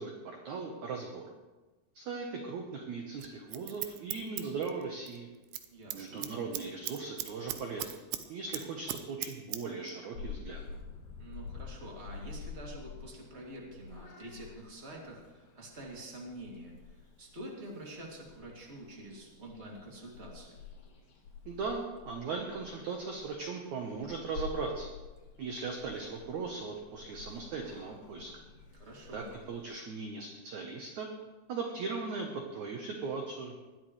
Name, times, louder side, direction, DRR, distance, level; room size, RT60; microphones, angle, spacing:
voice 1, 0.0-1.3 2.0-5.3 5.9-7.9 8.3-10.6 21.5-24.9 25.4-28.3 29.1-31.1 31.5-33.5, right 4 dB, 70° right, 1 dB, 1.8 m, -38 dB
Scissors, 3.2-5.2 5.4-5.7 5.9-8.2 8.5-9.6 9.9-10.0, right 14 dB, 90° right, 3.0 m, -38 dB
voice 2, 5.7-6.3 11.2-20.6 28.7-29.3, right 1 dB, 20° right, -2 dB, 2.1 m, -47 dB
Purr / Meow, 10.1-29.6, left 5 dB, 60° left, 3.5 m, -49 dB
19.0 x 13.0 x 3.3 m, 1.2 s
omnidirectional pair, 5.0 m